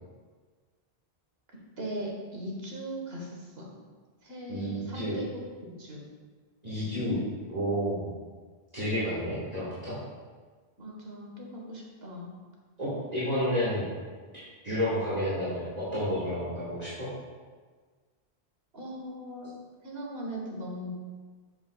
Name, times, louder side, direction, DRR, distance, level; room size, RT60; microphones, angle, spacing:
voice 1, 1.8-3.7 4.2-6.0 10.8-12.3 18.7-19.5 19.8-20.9, equal, 70° right, -2 dB, 1.6 m, -39 dB
voice 2, 4.5-5.2 6.6-7.2 7.5-8.1 8.7-10.0 12.8-13.9 14.3-17.1, equal, 40° right, -11 dB, 1.8 m, -30 dB
7.1 x 6.7 x 2.3 m, 1.5 s
omnidirectional pair, 1.1 m